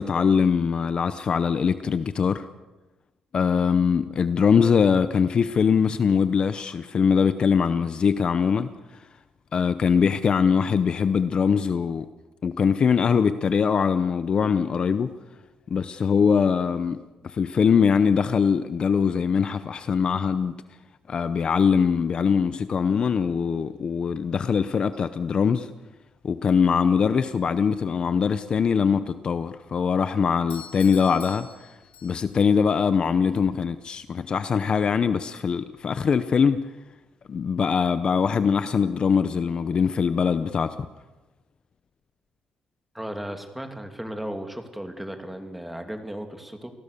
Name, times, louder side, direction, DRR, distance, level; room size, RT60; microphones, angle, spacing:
voice 1, 0.0-2.5 3.3-8.7 9.5-12.1 12.4-15.2 15.7-20.5 21.1-25.7 26.2-31.5 32.0-36.7 37.3-40.9, left 6 dB, 40° left, 0.8 m, -22 dB
Doorbell, 30.5-32.5, left 9 dB, 80° left, 3.3 m, -45 dB
voice 2, 42.9-46.7, right 1 dB, 5° right, 2.6 m, -35 dB
28.5 x 18.0 x 6.8 m
cardioid pair, 135°, 2 cm